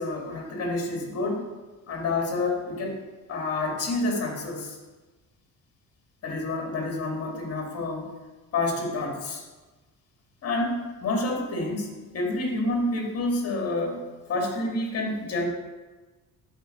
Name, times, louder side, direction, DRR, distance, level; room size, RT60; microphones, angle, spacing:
voice 1, 0.0-1.4 1.9-3.0 3.3-4.8 6.2-8.1 8.5-9.4 10.4-15.5, left 2 dB, 45° left, 1 dB, 2.3 m, -28 dB
9.1 x 4.7 x 6.7 m, 1.2 s
cardioid pair, 150°, 33 cm